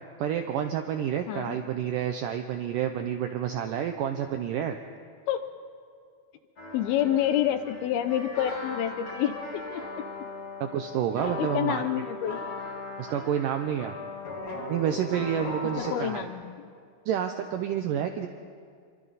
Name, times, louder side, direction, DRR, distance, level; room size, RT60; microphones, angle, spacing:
voice 1, 0.2-4.8 10.6-11.8 13.0-13.9 14.7-16.3 17.1-18.3, right 9 dB, 80° right, 6 dB, 1.9 m, -29 dB
sound 1, 6.6-16.0, left 2 dB, 35° left, 3.0 m, -38 dB
voice 2, 6.7-9.8 11.2-12.4 15.8-16.7, left 11 dB, 75° left, 9 dB, 2.6 m, -28 dB
28.0 x 24.0 x 4.1 m, 2.1 s
omnidirectional pair, 4.7 m